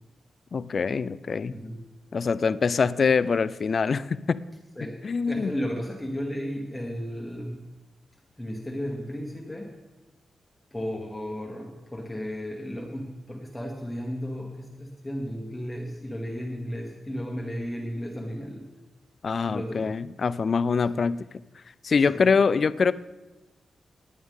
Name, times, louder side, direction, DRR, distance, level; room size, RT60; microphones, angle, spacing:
voice 1, 0.5-1.5 2.1-4.4 5.0-5.5 19.2-21.2 21.8-22.9, left 5 dB, 40° left, 16 dB, 0.3 m, -24 dB
voice 2, 4.8-7.7 8.4-9.7 10.7-18.7 19.5-19.9 20.8-20.9 22.1-22.2, equal, 10° left, 0 dB, 1.1 m, -34 dB
18.0 x 9.6 x 3.6 m, 1.1 s
wide cardioid pair, 175°, 0 cm